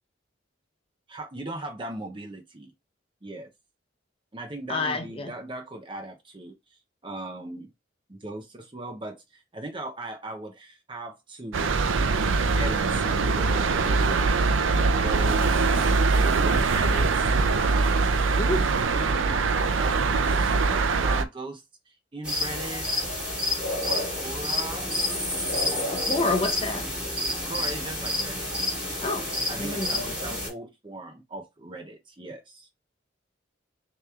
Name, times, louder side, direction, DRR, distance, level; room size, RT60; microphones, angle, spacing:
voice 1, 1.1-2.7 3.2-3.5 4.3-6.6 7.0-7.7 8.1-11.6 12.5-14.4 14.7-20.4 20.7-23.1 23.8-24.9 25.6-25.7 27.5-28.6 29.5-32.7, right 2 dB, 25° right, 0.7 m, -38 dB
voice 2, 4.7-5.3 18.4-18.7 25.9-26.8 29.0-29.3 29.6-30.1, left 2 dB, 30° left, 0.7 m, -28 dB
sound 1, 11.5-21.2, right 4 dB, 80° right, 0.5 m, -23 dB
sound 2, 22.2-30.5, left 1 dB, 5° right, 2.9 m, -29 dB
6.5 x 3.0 x 2.4 m
head